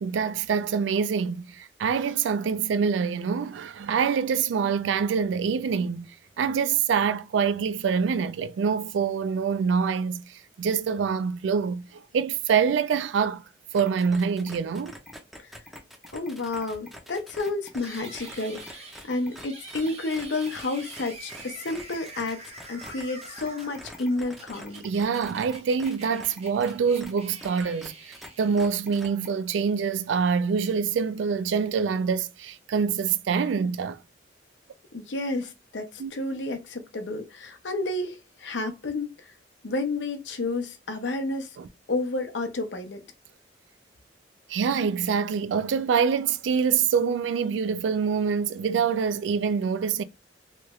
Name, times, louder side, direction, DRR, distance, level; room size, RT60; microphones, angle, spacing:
voice 1, 0.0-6.1 6.4-10.2 10.6-13.4 13.7-15.0 24.8-34.0 36.0-36.1 41.6-41.7 44.5-50.0, right 6 dB, 85° right, 0.3 m, -25 dB
sound 1, 13.7-28.3 28.6-29.3, equal, ahead, 0.5 m, -45 dB
voice 2, 16.1-22.4 22.7-24.9 34.9-39.3 39.6-41.6 41.9-43.0, left 2 dB, 75° left, 0.7 m, -31 dB
sound 2, 17.7-29.1, right 2 dB, 35° right, 0.7 m, -45 dB
3.1 x 2.3 x 3.0 m
head